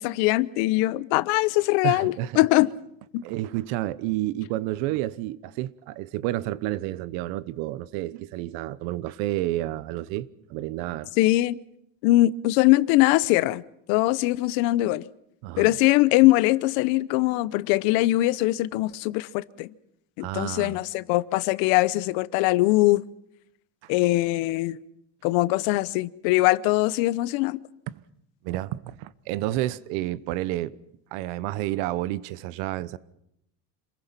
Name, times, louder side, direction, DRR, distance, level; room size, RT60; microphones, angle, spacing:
voice 1, 0.0-2.7 3.1-3.2 11.2-11.6 12.0-13.6 13.9-15.1 15.6-19.7 20.2-23.0 23.9-24.8 25.2-27.6, left 18 dB, 80° left, 0.9 m, -22 dB
voice 2, 1.8-2.4 3.2-11.1 15.4-15.7 20.2-20.8 23.8-23.9 28.4-30.8 31.1-33.0, right 15 dB, 80° right, 1.0 m, -30 dB
27.0 x 21.0 x 6.0 m
cardioid pair, 160°, 37 cm